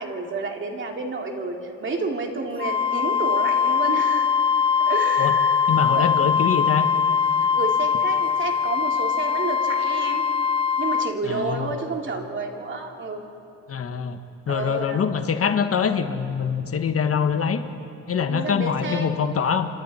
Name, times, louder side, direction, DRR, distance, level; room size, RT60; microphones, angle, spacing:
voice 1, 0.0-4.3 4.8-5.6 5.9-6.1 7.4-10.2 10.8-13.2 14.5-15.0 18.3-19.1, right 3 dB, 40° right, 2 dB, 2.9 m, -30 dB
Wind instrument woodwind instrument, 2.6-11.2, left 6 dB, 20° left, 0.6 m, -22 dB
voice 2, 5.7-6.9 11.2-11.7 13.7-14.2 14.5-17.6 18.1-19.7, left 7 dB, 50° left, 8 dB, 1.3 m, -24 dB
28.0 x 26.0 x 4.3 m, 2.7 s
cardioid pair, 90°, 30 cm